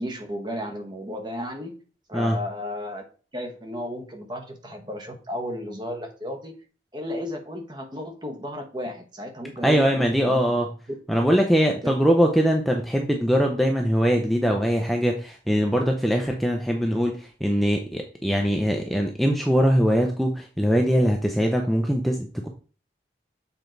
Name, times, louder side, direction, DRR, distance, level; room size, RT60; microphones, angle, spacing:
voice 1, 0.0-1.8 2.1-3.0 3.3-6.5 6.9-10.4 11.8-12.1, left 1 dB, 25° right, 5 dB, 1.0 m, -34 dB
voice 2, 9.6-10.7 11.1-22.5, equal, ahead, 2 dB, 0.6 m, -22 dB
7.1 x 4.4 x 3.9 m, 0.38 s
head